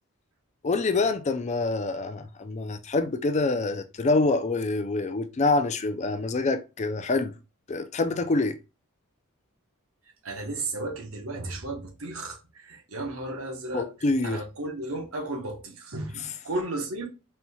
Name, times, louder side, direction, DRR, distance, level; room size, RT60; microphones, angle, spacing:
voice 1, 0.6-7.3 7.7-8.6 13.7-14.4, left 3 dB, 35° left, 0.4 m, -26 dB
voice 2, 10.2-13.9 14.2-17.1, right 2 dB, 80° right, 1.2 m, -34 dB
4.3 x 4.2 x 2.3 m
head